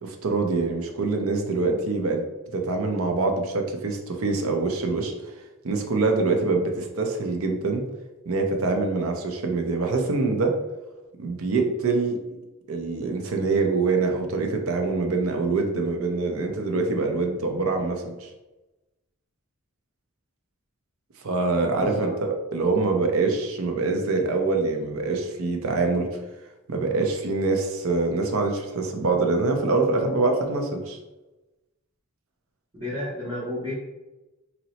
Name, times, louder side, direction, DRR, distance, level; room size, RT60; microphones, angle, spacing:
voice 1, 0.0-2.2 2.5-5.1 5.6-7.8 8.3-10.5 11.2-12.2 12.7-18.3 21.2-26.1 26.7-31.0, right 3 dB, 75° right, 4 dB, 0.5 m, -25 dB
voice 2, 21.6-22.1 32.7-33.8, left 1 dB, 25° right, -9 dB, 0.7 m, -31 dB
2.8 x 2.0 x 4.0 m, 1.1 s
head